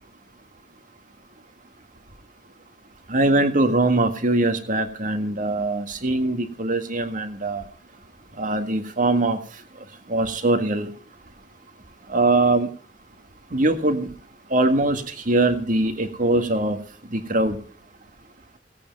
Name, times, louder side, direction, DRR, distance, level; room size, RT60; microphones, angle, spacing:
voice 1, 3.1-7.6 8.4-9.4 10.1-10.9 12.1-12.7 13.5-14.1 14.5-16.8 17.1-17.6, right 2 dB, 50° right, 7 dB, 1.7 m, -22 dB
17.5 x 8.5 x 5.3 m, 0.43 s
head